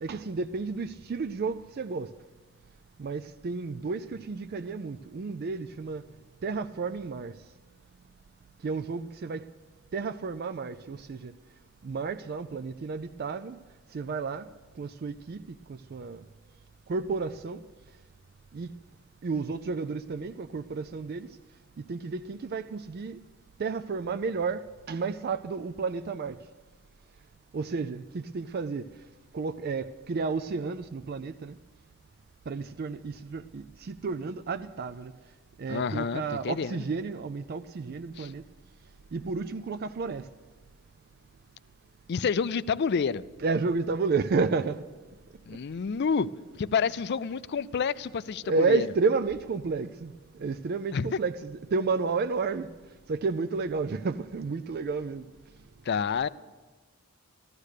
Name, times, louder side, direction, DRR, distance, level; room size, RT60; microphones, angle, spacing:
voice 1, 0.0-2.1 3.0-6.0 6.4-7.3 8.6-9.4 9.9-11.3 11.8-13.6 13.9-14.5 14.8-16.2 16.9-17.6 18.5-18.8 19.2-21.3 21.8-23.2 23.6-26.4 27.5-28.9 29.3-31.6 32.5-35.1 35.6-38.4 39.1-40.3 43.4-44.8 48.4-50.1 50.4-52.7 53.1-55.2, right 4 dB, 45° right, 0.4 m, -31 dB
voice 2, 35.7-36.8 38.2-38.3 42.1-43.2 45.5-46.3 46.6-48.9 50.9-51.1 55.9-56.3, left 6 dB, 50° left, 0.4 m, -29 dB
14.5 x 13.5 x 6.5 m
head